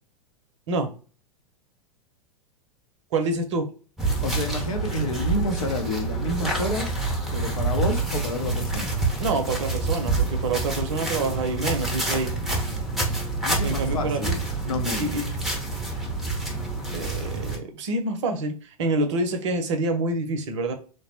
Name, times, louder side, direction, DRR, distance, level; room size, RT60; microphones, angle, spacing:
voice 1, 3.1-3.7 9.2-12.3 13.6-14.3 15.0-15.2 16.9-20.7, right 2 dB, 55° right, 0.6 m, -27 dB
sound 1, 4.0-17.6, right 3 dB, ahead, 0.6 m, -27 dB
voice 2, 4.2-7.0 7.3-8.9 13.4-14.4 14.6-15.1, left 1 dB, 70° left, 0.6 m, -29 dB
3.1 x 2.0 x 2.8 m
figure-of-eight pair, 95°, 18 cm